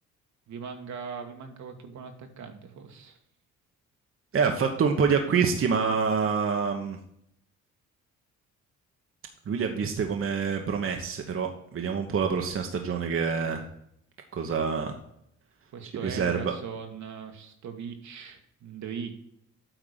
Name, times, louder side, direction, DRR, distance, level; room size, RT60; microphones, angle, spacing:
voice 1, 0.5-3.2 15.7-19.1, right 6 dB, 70° right, 5 dB, 1.5 m, -40 dB
voice 2, 4.3-7.0 9.5-13.7 14.3-15.0 16.0-16.5, right 6 dB, 45° right, 4 dB, 1.1 m, -26 dB
9.0 x 3.7 x 6.4 m, 0.73 s
cardioid pair, 90°, 30 cm